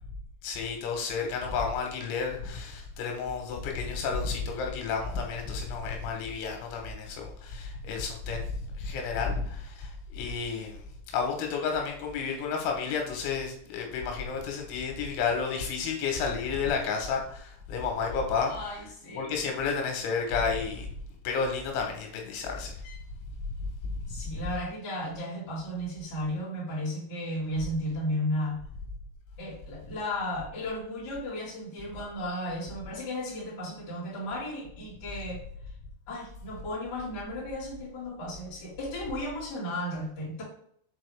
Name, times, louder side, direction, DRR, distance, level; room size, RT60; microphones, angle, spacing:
voice 1, 0.4-18.5 19.2-20.9 21.3-23.0 23.5-24.2, left 5 dB, 85° left, 2 dB, 3.5 m, -31 dB
voice 2, 18.5-19.4 24.1-28.6 29.4-35.4 36.1-40.4, left 1 dB, 30° left, -6 dB, 2.3 m, -34 dB
7.2 x 4.5 x 3.4 m, 0.63 s
omnidirectional pair, 5.5 m